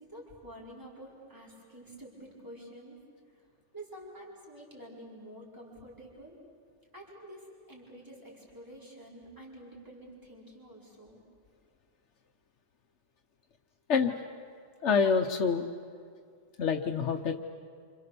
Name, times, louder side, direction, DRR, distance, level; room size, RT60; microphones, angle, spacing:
voice 1, 0.0-3.0 3.7-6.4 6.9-11.2, right 1 dB, 15° right, -4 dB, 4.9 m, -49 dB
voice 2, 14.8-15.7 16.6-17.4, left 5 dB, 80° left, 5 dB, 1.3 m, -26 dB
29.0 x 26.5 x 6.8 m, 2.2 s
omnidirectional pair, 1.2 m